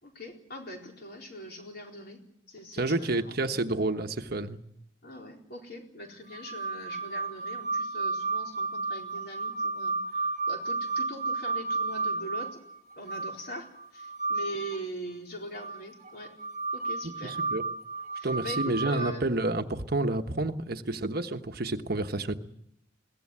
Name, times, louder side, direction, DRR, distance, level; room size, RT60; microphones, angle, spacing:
voice 1, 0.0-2.2 2.5-3.6 5.0-12.6 13.0-16.3 16.7-17.4 18.1-19.2, equal, 50° left, 1 dB, 4.3 m, -42 dB
voice 2, 2.8-4.6 17.2-17.6 18.2-22.3, right 2 dB, 50° right, 7 dB, 1.2 m, -29 dB
sound 1, 6.3-14.8 15.6-19.1, right 3 dB, 35° right, 1.5 m, -32 dB
22.0 x 17.0 x 9.8 m, 0.75 s
head